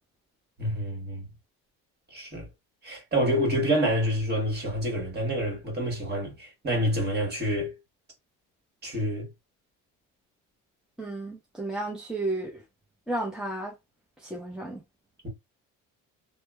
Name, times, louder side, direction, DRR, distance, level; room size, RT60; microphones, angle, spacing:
voice 1, 0.6-1.2 2.1-2.5 2.8-7.7 8.8-9.3, equal, 30° right, 1.4 m, -27 dB
voice 2, 11.0-12.6 13.1-13.7 14.2-14.8, right 2 dB, ahead, 0.6 m, -33 dB
2.8 x 2.1 x 2.2 m
cardioid pair, 110°, 33 cm